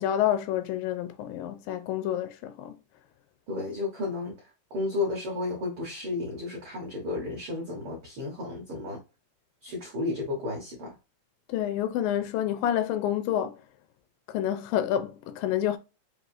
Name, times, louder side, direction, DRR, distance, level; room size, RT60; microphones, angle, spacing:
voice 1, 0.0-2.8 11.5-13.6 14.3-15.8, left 11 dB, 80° left, 2.1 m, -28 dB
voice 2, 3.5-4.3 4.7-9.0 9.6-10.9, left 3 dB, 75° right, 1.2 m, -32 dB
6.1 x 2.6 x 2.5 m
omnidirectional pair, 4.1 m